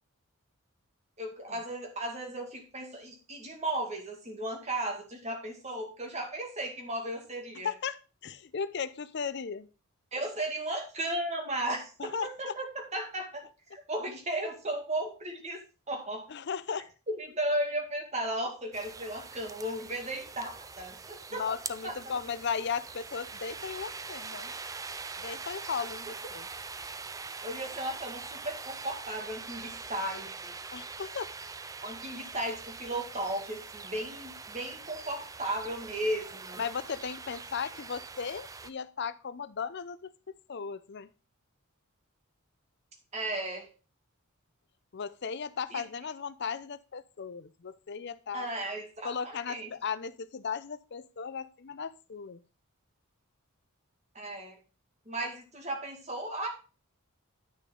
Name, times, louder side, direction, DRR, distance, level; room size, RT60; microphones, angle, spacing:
voice 1, 1.2-7.7 10.1-13.4 13.7-16.3 17.1-21.5 21.8-22.2 27.4-30.6 31.8-36.6 43.1-43.7 45.7-45.8 48.3-49.7 54.1-54.6 55.1-56.5, right 1 dB, 30° right, 2.0 m, -35 dB
voice 2, 7.6-9.7 12.0-12.6 16.3-16.9 21.3-24.5 25.2-26.5 30.7-31.3 36.6-40.1 40.5-41.1 44.9-48.5 49.0-52.4, left 6 dB, 50° left, 0.5 m, -36 dB
sound 1, 18.7-38.7, right 4 dB, 15° right, 0.3 m, -43 dB
10.0 x 6.4 x 3.8 m
head